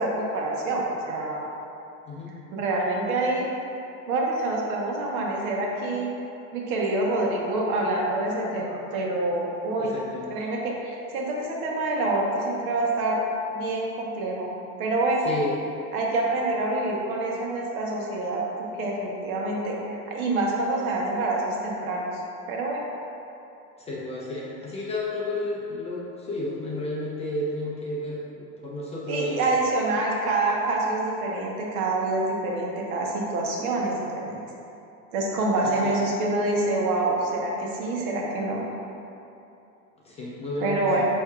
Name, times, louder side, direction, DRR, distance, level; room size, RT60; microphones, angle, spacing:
voice 1, 0.0-1.4 2.5-3.5 3.8-6.1 6.5-10.0 10.3-13.2 13.5-14.5 14.8-15.2 15.9-22.1 22.5-22.8 29.1-34.4 35.1-38.7 40.6-41.1, right 2 dB, 80° right, -2 dB, 1.0 m, -26 dB
voice 2, 9.8-10.3 15.2-15.6 23.8-29.4 35.6-36.0 40.0-41.1, left 1 dB, 15° left, -6 dB, 0.4 m, -32 dB
8.0 x 2.8 x 2.3 m, 2.8 s
supercardioid pair, 120°, 42 cm